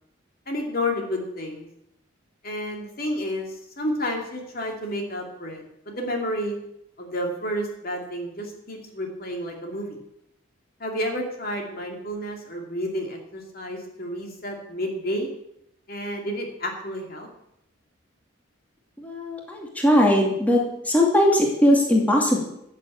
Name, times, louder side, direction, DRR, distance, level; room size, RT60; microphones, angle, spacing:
voice 1, 0.5-1.7 2.4-3.5 3.8-6.6 7.0-10.0 10.8-15.3 15.9-17.3, equal, 45° left, 2 dB, 2.6 m, -30 dB
voice 2, 19.0-22.4, equal, 5° left, -1 dB, 2.4 m, -20 dB
14.0 x 7.5 x 8.7 m, 0.80 s
head